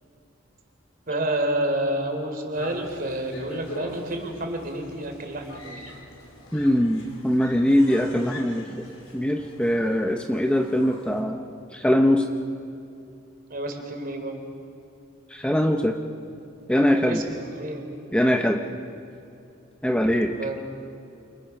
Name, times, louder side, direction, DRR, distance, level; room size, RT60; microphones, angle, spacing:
voice 1, 1.1-5.8 13.5-14.4 17.0-17.9 20.4-20.6, right 1 dB, 45° right, 4 dB, 3.8 m, -29 dB
sound 1, 2.5-11.2, left 1 dB, 85° left, 4.9 m, -44 dB
Screaming, 5.5-6.2 6.5-8.8 9.8-10.1, left 3 dB, 70° left, 3.9 m, -45 dB
voice 2, 6.5-8.7 9.1-11.4 11.7-12.3 15.3-16.0 16.7-17.2 18.1-18.6 19.8-20.3, equal, 5° left, 3 dB, 0.9 m, -22 dB
29.0 x 29.0 x 6.1 m, 2.5 s
head